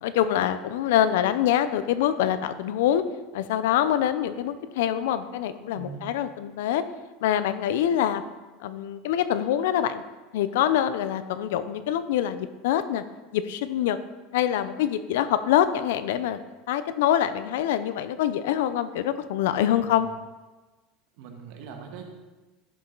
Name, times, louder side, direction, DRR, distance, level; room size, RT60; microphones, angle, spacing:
voice 1, 0.0-3.0 3.3-6.8 7.2-8.2 8.6-10.0 10.3-13.0 13.3-14.0 14.3-16.4 16.7-20.1, left 11 dB, 85° left, 12 dB, 0.6 m, -25 dB
voice 2, 5.7-6.1 19.7-20.1 21.2-22.1, right 6 dB, 65° right, 3 dB, 1.6 m, -41 dB
11.0 x 7.2 x 4.0 m, 1.2 s
supercardioid pair, 140°, 0 cm